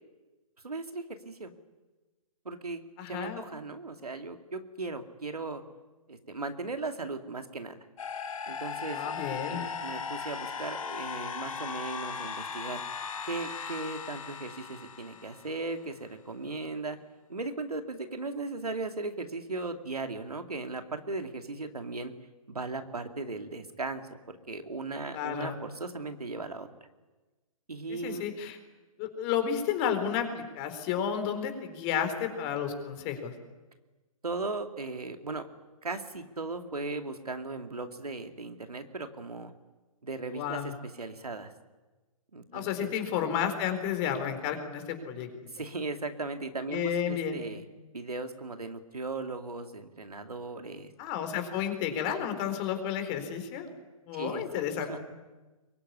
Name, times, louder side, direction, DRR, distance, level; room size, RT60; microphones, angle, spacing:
voice 1, 0.6-1.5 2.4-2.8 3.1-5.6 6.1-7.8 8.5-9.1 9.5-12.8 13.2-17.0 17.3-22.1 22.5-24.1 24.5-26.7 27.7-28.3 34.2-35.5 35.8-39.5 40.0-41.5 42.3-43.0 45.5-47.7 47.9-50.9 54.1-54.4 54.8-55.0, right 3 dB, 90° right, 6 dB, 2.5 m, -37 dB
voice 2, 3.0-3.4 8.9-9.6 25.1-25.6 27.9-28.6 29.0-33.3 40.3-40.7 42.5-45.3 46.7-47.4 51.0-53.7 54.1-55.0, left 8 dB, 30° left, 7 dB, 4.3 m, -32 dB
sound 1, 8.0-15.9, left 6 dB, 65° left, 4.3 m, -38 dB
23.5 x 22.5 x 9.8 m, 1.2 s
hypercardioid pair, 135°, 19 cm